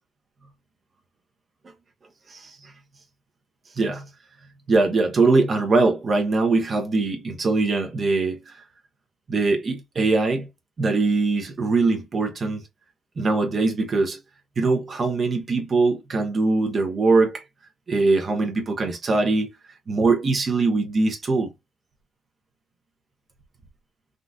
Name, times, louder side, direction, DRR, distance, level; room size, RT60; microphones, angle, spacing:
voice 1, 2.3-2.7 3.8-4.0 4.7-8.6 9.3-10.5 10.8-12.6 13.2-14.2 14.6-17.4 17.9-19.5 19.9-21.5, right 3 dB, 40° right, 0.7 m, -22 dB
3.7 x 2.4 x 2.2 m
cardioid pair, 125°, 0 cm